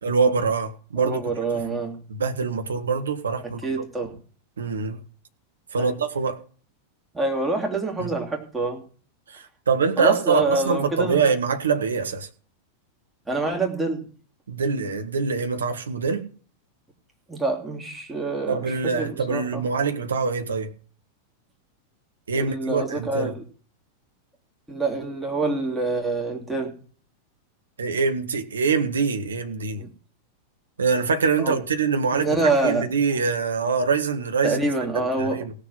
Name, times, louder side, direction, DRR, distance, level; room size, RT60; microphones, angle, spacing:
voice 1, 0.0-1.2 2.1-3.6 4.6-5.0 5.7-6.4 8.0-8.1 9.3-12.3 14.5-16.3 18.5-20.7 22.3-23.3 27.8-29.9 30.8-34.6 34.9-35.5, right 5 dB, 70° right, 1.6 m, -24 dB
voice 2, 1.0-2.0 3.4-4.2 5.7-5.9 7.1-8.8 10.0-11.3 13.3-14.1 17.3-19.6 22.3-23.4 24.7-26.8 29.8-29.9 31.4-31.6 32.1-32.9 34.4-35.4, right 3 dB, 10° right, 3.1 m, -26 dB
17.0 x 6.8 x 5.6 m
figure-of-eight pair, 90°, 0 cm